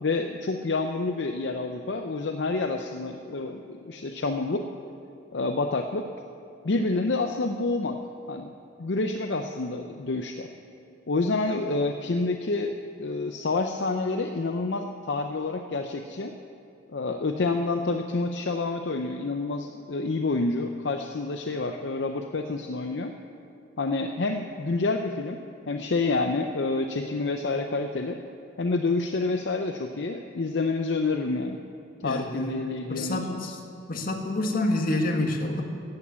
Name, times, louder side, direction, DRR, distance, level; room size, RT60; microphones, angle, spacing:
voice 1, 0.0-4.7 5.3-6.1 6.6-8.0 8.3-8.5 8.8-10.5 11.1-16.3 16.9-23.2 23.8-25.4 25.7-28.2 28.6-31.6 32.0-33.5, left 3 dB, 70° left, 5 dB, 0.6 m, -28 dB
voice 2, 32.0-32.6 32.9-33.6 33.9-35.6, left 2 dB, 50° left, 3 dB, 1.5 m, -28 dB
14.5 x 8.7 x 8.3 m, 2.9 s
head